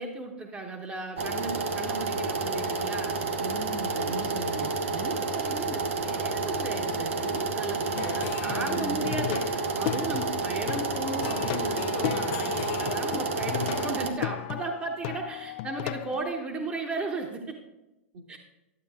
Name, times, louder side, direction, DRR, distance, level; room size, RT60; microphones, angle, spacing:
voice 1, 0.0-3.2 4.9-17.6 18.3-18.4, right 3 dB, 20° right, 2 dB, 1.0 m, -35 dB
sound 1, 1.2-14.1, right 3 dB, 90° right, 1.1 m, -30 dB
voice 2, 3.4-4.7 8.4-9.1 18.1-18.4, right 2 dB, 50° right, 2 dB, 1.5 m, -38 dB
Plucked string instrument, 8.0-16.2, left 16 dB, 50° left, 0.3 m, -35 dB
11.5 x 7.6 x 3.5 m, 0.97 s
hypercardioid pair, 130°, 7 cm